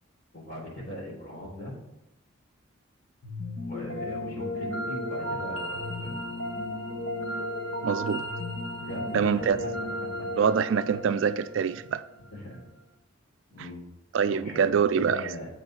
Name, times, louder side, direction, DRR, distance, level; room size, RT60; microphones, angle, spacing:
voice 1, 0.3-1.7 3.5-6.2 8.8-9.7 10.0-10.3 12.3-12.7 13.5-13.8 14.3-15.5, equal, 50° left, -3 dB, 3.5 m, -39 dB
sound 1, 3.2-12.4, left 1 dB, 70° left, 1.5 m, -34 dB
voice 2, 7.8-8.2 9.1-9.6 10.4-12.0 14.1-15.2, right 7 dB, 60° right, 13 dB, 0.3 m, -25 dB
7.5 x 5.5 x 5.6 m, 0.88 s
head